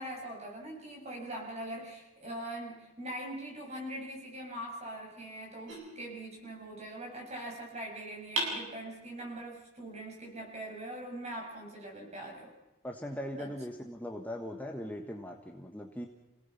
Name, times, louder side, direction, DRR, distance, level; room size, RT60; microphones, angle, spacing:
voice 1, 0.0-12.5 13.4-13.5, right 1 dB, 35° right, 0 dB, 6.9 m, -42 dB
sound 1, 5.7-6.8 8.4-9.4, right 2 dB, 70° right, 7.5 m, -38 dB
voice 2, 12.8-16.1, equal, 10° left, 2 dB, 1.4 m, -40 dB
29.0 x 18.0 x 5.9 m, 1.0 s
head